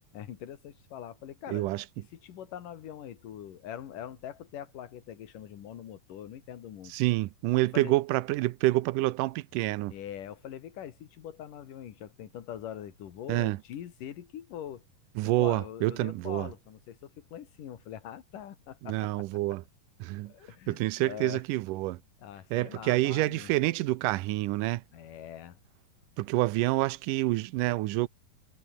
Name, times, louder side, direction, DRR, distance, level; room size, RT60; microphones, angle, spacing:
voice 1, 0.1-1.7 2.1-6.9 7.7-7.9 9.9-14.8 15.4-19.2 20.3-21.4 22.2-23.5 24.9-25.6, left 10 dB, 85° left, 3.5 m, -43 dB
voice 2, 1.5-1.9 6.9-9.9 13.3-13.6 15.2-16.5 18.8-19.6 20.0-20.3 20.7-22.0 22.5-24.8 26.2-28.1, right 18 dB, 85° right, 2.3 m, -28 dB
omnidirectional pair, 3.7 m